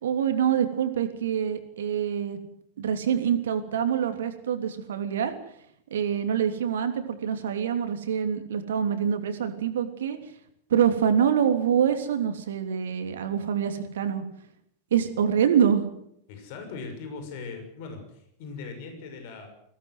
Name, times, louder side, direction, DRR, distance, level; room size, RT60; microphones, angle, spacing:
voice 1, 0.0-2.4 2.8-5.3 5.9-10.2 10.7-14.2 14.9-15.9, right 8 dB, 60° right, 7 dB, 3.1 m, -25 dB
voice 2, 16.3-19.5, left 4 dB, 50° left, 5 dB, 6.5 m, -39 dB
22.5 x 17.5 x 8.1 m, 0.73 s
figure-of-eight pair, 90°, 0 cm